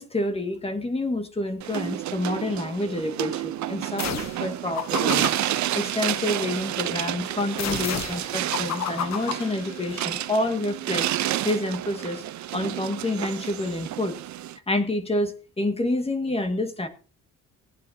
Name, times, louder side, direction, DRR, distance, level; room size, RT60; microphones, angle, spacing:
voice 1, 0.0-5.3 5.7-11.1 11.4-12.2 12.5-14.2 14.7-16.9, left 1 dB, 20° left, 6 dB, 1.9 m, -28 dB
sound 1, 1.6-14.6, right 13 dB, 70° right, 0.7 m, -30 dB
sound 2, 4.0-4.5 4.8-6.5 7.6-10.2, left 8 dB, 60° left, 1.2 m, -33 dB
18.5 x 10.0 x 2.8 m, 0.36 s
cardioid pair, 90°, 30 cm